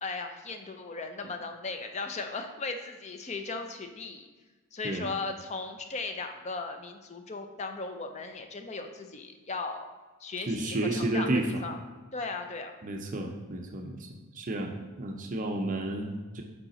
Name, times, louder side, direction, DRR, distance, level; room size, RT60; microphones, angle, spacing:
voice 1, 0.0-4.3 4.7-9.9 10.2-11.8 12.1-12.7, left 3 dB, 30° left, 6 dB, 0.5 m, -37 dB
voice 2, 10.5-11.7 12.8-14.1 14.3-16.4, right 1 dB, 35° right, 2 dB, 0.5 m, -31 dB
5.4 x 4.8 x 4.2 m, 1.3 s
head